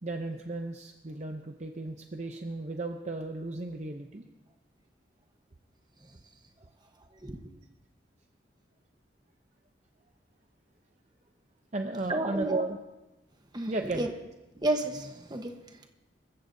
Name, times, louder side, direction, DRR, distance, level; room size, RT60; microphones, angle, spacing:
voice 1, 0.0-4.2 11.7-12.8 13.7-14.1, right 2 dB, 40° right, 4 dB, 0.6 m, -34 dB
voice 2, 12.1-12.6 13.5-14.1 14.6-15.5, right 2 dB, 25° right, 5 dB, 1.1 m, -31 dB
26.0 x 14.5 x 2.7 m, 1.0 s
head